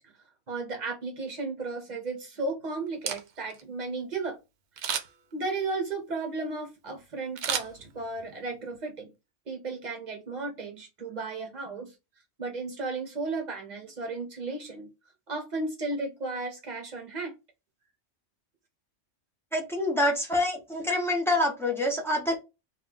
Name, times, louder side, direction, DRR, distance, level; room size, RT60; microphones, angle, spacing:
voice 1, 0.5-4.4 5.3-9.1 9.5-11.9 12.4-14.9 15.3-17.3, right 3 dB, 40° right, 4 dB, 1.0 m, -34 dB
Camera, 2.9-3.6 4.8-5.3 7.4-8.3 8.7-8.8, right 8 dB, 70° right, 0.8 m, -33 dB
voice 2, 19.5-22.4, left 1 dB, 5° left, 0 dB, 0.5 m, -26 dB
2.4 x 2.2 x 3.8 m, 0.25 s
omnidirectional pair, 1.3 m